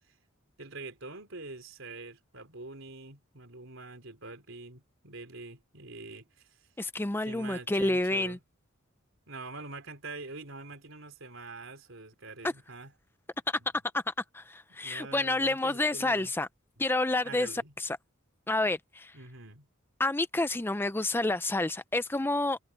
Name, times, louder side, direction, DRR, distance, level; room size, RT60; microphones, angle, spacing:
voice 1, 0.6-6.5 7.3-8.4 9.3-12.9 14.7-16.3 17.2-17.7 19.1-19.7, right 3 dB, 65° right, 4.1 m, -45 dB
voice 2, 6.8-8.4 12.4-12.5 13.5-13.6 13.9-16.5 16.8-18.0 18.5-19.2 20.0-22.6, left 2 dB, 10° left, 0.5 m, -29 dB
head